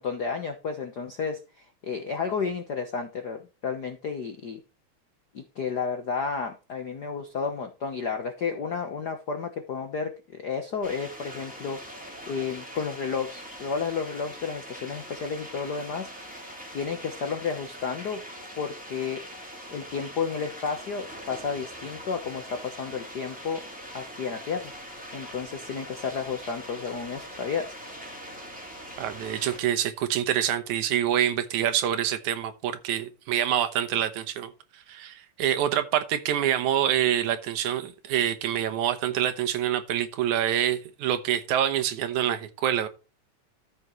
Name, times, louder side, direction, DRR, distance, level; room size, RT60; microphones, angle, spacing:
voice 1, 0.0-4.6 5.3-16.1 16.7-18.2 18.6-19.2 19.7-23.6 23.9-24.7 25.1-27.7, left 5 dB, 65° left, 0.9 m, -32 dB
sound 1, 10.8-29.6, equal, 5° right, 2.6 m, -42 dB
voice 2, 29.0-34.5 34.9-42.9, right 10 dB, 85° right, 2.5 m, -26 dB
13.5 x 6.3 x 3.1 m
omnidirectional pair, 3.4 m